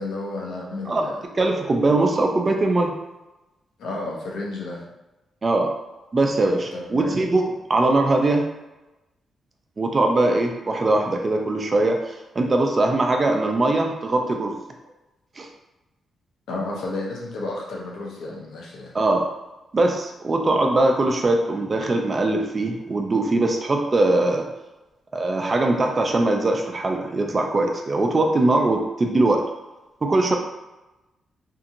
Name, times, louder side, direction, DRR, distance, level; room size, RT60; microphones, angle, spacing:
voice 1, 0.0-1.2 3.8-4.8 6.7-7.2 16.5-18.9, left 2 dB, 85° left, -2 dB, 0.6 m, -32 dB
voice 2, 1.3-2.9 5.4-5.7 6.1-8.5 9.8-14.6 15.4-15.5 18.9-19.3 19.7-24.5 25.1-29.4 30.0-30.4, right 2 dB, 35° right, 3 dB, 0.4 m, -21 dB
2.8 x 2.6 x 2.5 m, 1.0 s
cardioid pair, 105°, 0 cm